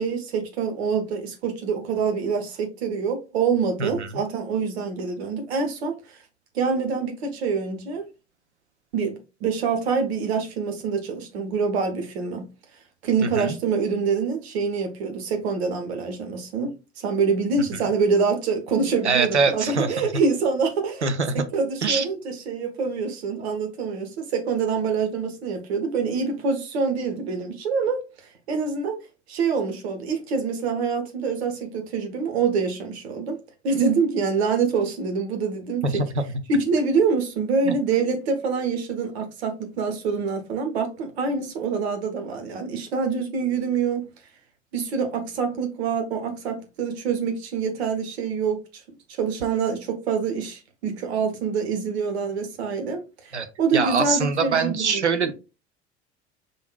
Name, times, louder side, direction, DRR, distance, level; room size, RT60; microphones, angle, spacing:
voice 1, 0.0-6.2 6.5-8.0 8.9-12.5 13.0-21.1 21.3-28.0 28.5-29.0 29.3-33.4 33.6-36.0 36.5-44.1 44.7-48.6 49.2-55.3, right 5 dB, 65° right, 1.2 m, -25 dB
voice 2, 13.2-13.6 19.0-19.9 21.0-21.4 21.8-22.0 35.8-36.2 37.6-37.7 53.3-53.5 53.7-55.3, right 4 dB, 85° right, 0.6 m, -23 dB
5.3 x 3.6 x 2.3 m
figure-of-eight pair, 65°, 33 cm